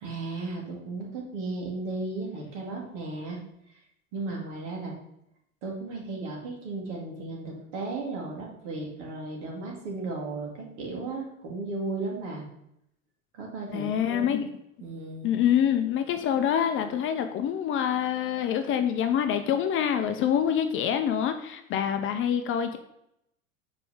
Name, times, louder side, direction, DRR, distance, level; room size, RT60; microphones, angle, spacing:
voice 1, 0.0-3.4 4.1-5.0 5.6-12.5 13.3-14.3 14.8-15.3, right 3 dB, 60° right, -1 dB, 2.3 m, -35 dB
voice 2, 13.7-14.5 15.2-22.8, left 9 dB, 30° left, 7 dB, 0.6 m, -26 dB
4.9 x 4.8 x 4.8 m, 0.77 s
figure-of-eight pair, 85°, 40 cm